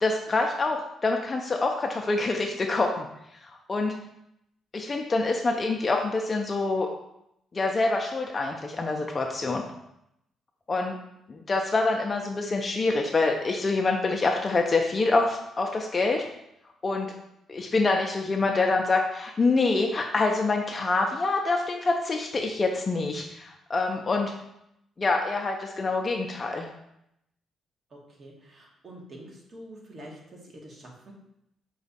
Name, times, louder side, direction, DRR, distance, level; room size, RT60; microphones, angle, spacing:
voice 1, 0.0-3.1 3.4-3.9 4.7-6.9 7.5-9.6 10.7-11.0 11.3-16.2 16.8-17.1 17.5-24.3 25.0-26.7, left 3 dB, 35° left, 2 dB, 0.4 m, -26 dB
voice 2, 27.9-31.1, right 1 dB, 45° right, -1 dB, 1.1 m, -46 dB
5.1 x 2.3 x 4.0 m, 0.81 s
cardioid pair, 90°, 0 cm